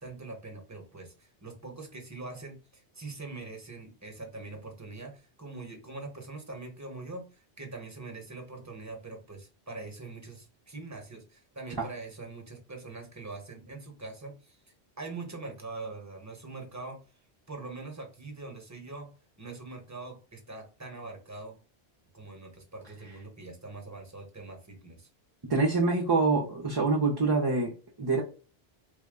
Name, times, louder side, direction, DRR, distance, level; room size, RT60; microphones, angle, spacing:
voice 1, 0.0-14.6 15.0-17.0 17.5-19.1 19.4-21.6 22.1-25.1, right 3 dB, 15° right, 2 dB, 0.8 m, -43 dB
voice 2, 25.5-28.2, right 3 dB, 35° right, -3 dB, 0.4 m, -26 dB
3.5 x 2.1 x 3.5 m, 0.35 s
omnidirectional pair, 1.1 m